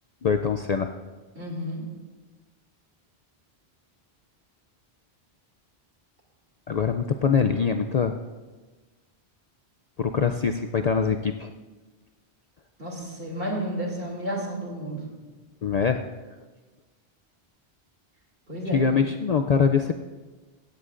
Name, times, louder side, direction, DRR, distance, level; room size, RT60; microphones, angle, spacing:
voice 1, 0.2-0.9 6.7-8.2 10.0-11.5 15.6-16.0 18.7-19.9, left 6 dB, 55° left, 6 dB, 0.5 m, -23 dB
voice 2, 1.3-1.8 12.8-15.0 18.5-18.8, right 1 dB, 60° right, -2 dB, 3.0 m, -31 dB
16.5 x 14.5 x 2.5 m, 1.3 s
omnidirectional pair, 1.1 m